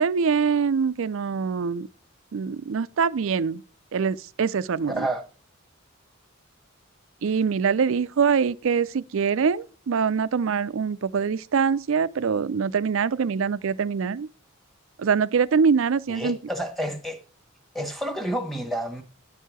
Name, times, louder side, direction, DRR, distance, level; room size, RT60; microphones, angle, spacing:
voice 1, 0.0-1.9 2.3-3.6 3.9-5.1 7.2-14.3 15.0-16.4, right 6 dB, 65° right, 0.4 m, -24 dB
voice 2, 4.9-5.2 16.1-17.2 17.7-19.0, right 1 dB, ahead, 1.2 m, -29 dB
9.9 x 4.6 x 6.1 m
head